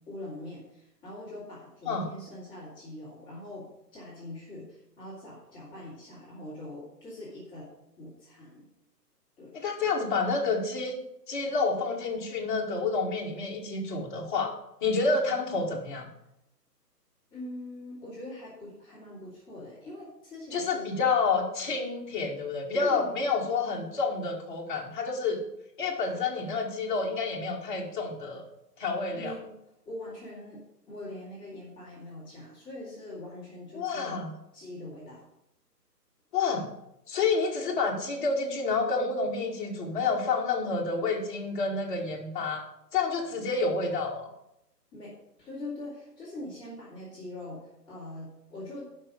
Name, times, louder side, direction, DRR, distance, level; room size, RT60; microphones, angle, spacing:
voice 1, 0.1-3.7 3.9-7.7 8.0-8.6 9.4-9.6 17.3-21.1 22.7-23.1 29.1-29.5 29.8-30.6 30.9-34.2 34.5-35.2 43.4-43.5 44.9-48.9, left 1 dB, 10° left, -9 dB, 2.8 m, -42 dB
voice 2, 9.5-11.0 11.3-14.5 14.8-16.1 20.5-25.4 25.8-28.4 28.8-29.3 33.7-34.3 36.3-36.7 37.1-42.6 42.9-44.3, left 4 dB, 30° left, -1 dB, 1.9 m, -29 dB
12.0 x 5.5 x 5.3 m, 0.83 s
figure-of-eight pair, 145°, 49 cm